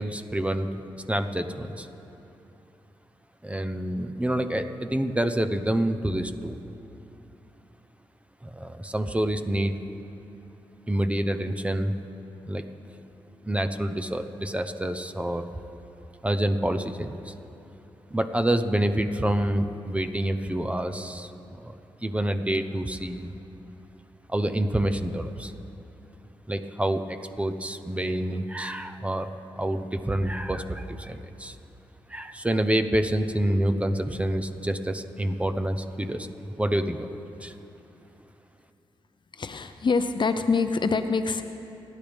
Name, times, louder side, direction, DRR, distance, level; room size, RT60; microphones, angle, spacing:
voice 1, 0.0-1.9 3.4-6.6 8.4-9.7 10.9-11.9 12.5-12.7 13.4-15.5 16.2-17.3 18.1-21.3 21.6-23.3 24.3-25.5 26.5-29.3 29.6-31.6 32.1-37.1 37.4-37.5, right 1 dB, 10° right, 8 dB, 0.8 m, -27 dB
voice 2, 39.3-41.4, left 4 dB, 50° left, 8 dB, 0.7 m, -25 dB
30.0 x 10.5 x 3.6 m, 2.9 s
cardioid pair, 70°, 10 cm